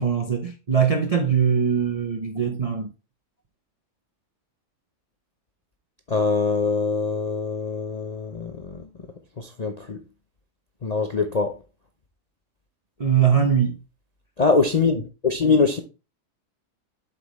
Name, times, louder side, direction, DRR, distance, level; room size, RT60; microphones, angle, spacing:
voice 1, 0.0-2.9 13.0-13.8, right 7 dB, 60° right, 0.3 m, -21 dB
voice 2, 6.1-8.8 9.4-10.0 10.8-11.5 14.4-15.8, left 4 dB, 50° left, 0.4 m, -23 dB
7.6 x 5.6 x 3.1 m
omnidirectional pair, 1.8 m